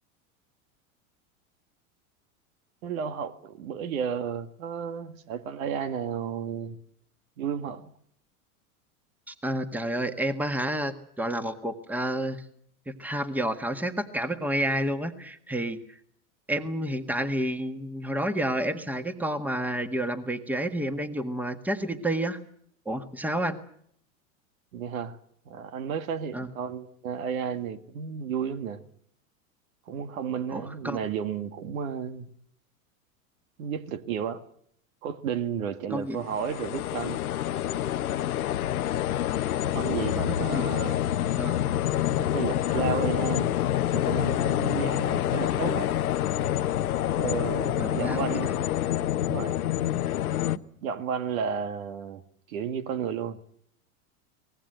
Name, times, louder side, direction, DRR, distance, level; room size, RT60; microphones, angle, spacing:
voice 1, 2.8-6.8 7.4-7.9 24.7-25.2 25.5-28.8 29.9-32.3 33.6-34.4 35.0-37.2 39.7-41.0 42.1-43.6 43.9-45.9 47.1-48.8 49.2-49.6 50.5-52.2 52.5-53.4, right 7 dB, 70° right, 1.9 m, -32 dB
voice 2, 9.3-12.4 12.9-15.8 16.5-22.4 22.8-23.6 26.3-26.5 30.5-31.0 35.9-36.2 40.2-40.7 41.4-41.6 47.8-48.3 48.6-48.7, right 1 dB, 5° right, 1.6 m, -30 dB
sound 1, 36.2-50.6, left 12 dB, 90° left, 1.0 m, -27 dB
24.0 x 19.0 x 7.9 m
hypercardioid pair, 110°, 43 cm